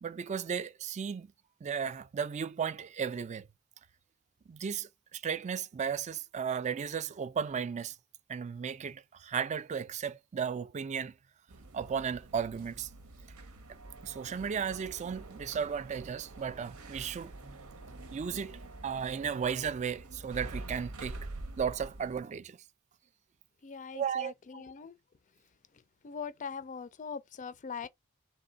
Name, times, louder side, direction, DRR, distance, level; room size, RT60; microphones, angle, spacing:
voice 1, 0.0-1.3 1.6-3.5 4.5-8.0 8.3-11.1 11.7-12.9 14.0-17.3 18.1-21.2 21.6-22.6 23.9-24.6, right 7 dB, 35° right, 0.3 m, -35 dB
sound 1, 11.5-22.2, right 2 dB, 90° right, 0.8 m, -46 dB
voice 2, 23.6-25.0 26.0-27.9, left 6 dB, 35° left, 0.4 m, -41 dB
3.3 x 3.3 x 3.9 m
head